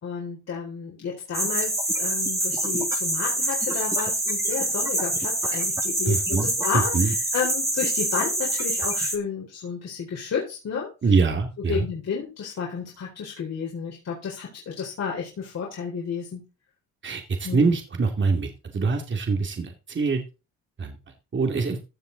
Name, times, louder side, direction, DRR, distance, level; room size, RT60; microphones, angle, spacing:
voice 1, 0.0-10.9 11.7-16.4 17.4-17.7, left 6 dB, 55° left, -3 dB, 4.4 m, -32 dB
sound 1, 1.3-9.2, right 1 dB, 10° right, 2.3 m, -26 dB
voice 2, 6.1-6.5 6.7-7.1 11.0-11.8 17.0-20.2 20.8-21.0 21.3-21.8, right 4 dB, 40° right, 4 dB, 2.6 m, -24 dB
16.0 x 6.1 x 4.0 m, 0.29 s
cardioid pair, 90°, 30 cm